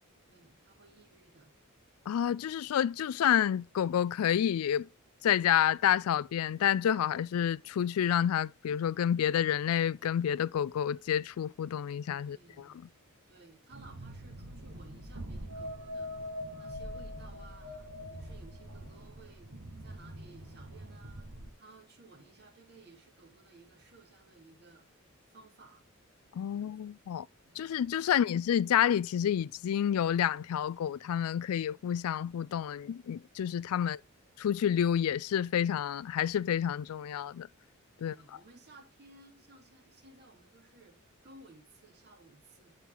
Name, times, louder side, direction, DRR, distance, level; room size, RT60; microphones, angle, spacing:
voice 1, 0.3-1.5 12.2-13.0 13.3-19.5 19.8-21.3 21.6-25.8 26.5-26.7 27.5-27.7 28.0-28.3 33.8-33.9 38.0-42.8, right 3 dB, 50° right, 2.7 m, -58 dB
voice 2, 2.1-4.9 5.2-12.4 26.3-27.3 27.6-34.0 34.4-37.5 38.0-38.2, left 9 dB, 75° left, 0.3 m, -29 dB
sound 1, 13.7-21.5, equal, 70° right, 1.6 m, -43 dB
12.0 x 4.4 x 3.9 m
head